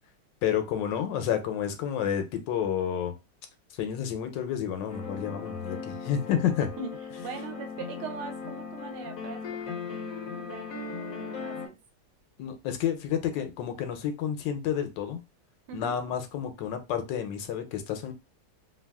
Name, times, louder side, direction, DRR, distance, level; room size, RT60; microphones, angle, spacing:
voice 1, 0.4-3.1 3.8-6.7 12.4-15.2 15.7-18.1, left 9 dB, 90° left, 1.3 m, -30 dB
sound 1, 4.9-11.7, left 6 dB, 70° left, 0.8 m, -38 dB
voice 2, 7.2-11.8 15.7-16.0, right 6 dB, 80° right, 1.2 m, -41 dB
3.1 x 2.3 x 2.2 m
omnidirectional pair, 1.9 m